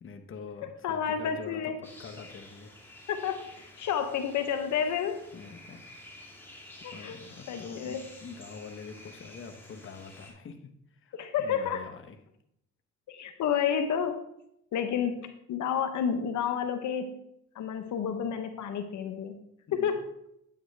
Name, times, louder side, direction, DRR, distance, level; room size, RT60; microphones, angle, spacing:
voice 1, 0.0-2.7 5.3-5.8 6.9-12.2 19.7-20.0, left 5 dB, 45° left, 6 dB, 1.1 m, -45 dB
voice 2, 0.8-1.8 3.1-5.2 6.8-7.2 7.5-8.0 11.1-11.9 13.1-14.2 14.7-17.2 17.5-19.4 19.7-20.1, left 7 dB, 75° left, 7 dB, 1.0 m, -30 dB
sound 1, 1.8-10.3, left 1 dB, 10° left, 3.1 m, -50 dB
9.1 x 9.0 x 3.3 m, 0.75 s
cardioid pair, 90°, 30 cm